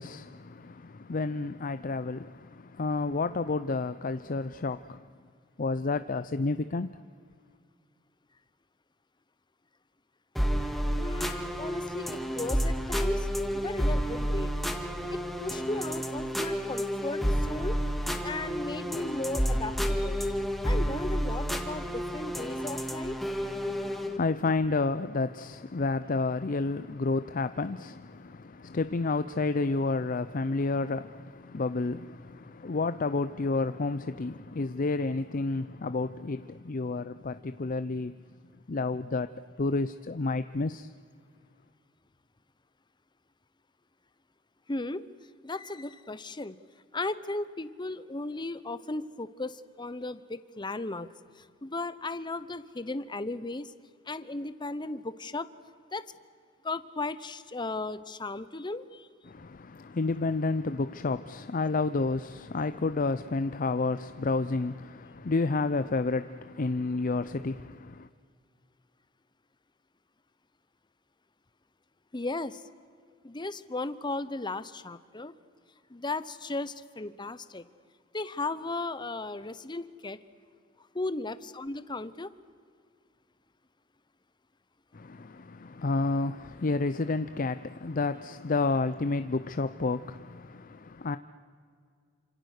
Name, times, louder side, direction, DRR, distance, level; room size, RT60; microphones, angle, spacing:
voice 1, 0.0-5.0 5.6-7.0 23.4-38.1 38.7-39.3 39.6-40.9 59.3-68.1 84.9-91.2, left 3 dB, 45° left, 0.6 m, -30 dB
sound 1, 10.3-24.2, equal, ahead, 1.8 m, -30 dB
voice 2, 11.0-13.3 13.5-14.5 15.1-17.8 18.2-20.3 20.6-23.2 44.7-45.1 45.4-46.6 46.9-53.7 54.0-55.5 55.9-56.1 56.6-59.1 72.1-72.6 73.2-75.3 75.9-77.6 78.1-80.2 80.8-82.3, left 2 dB, 25° left, 0.9 m, -36 dB
28.0 x 26.5 x 6.6 m
head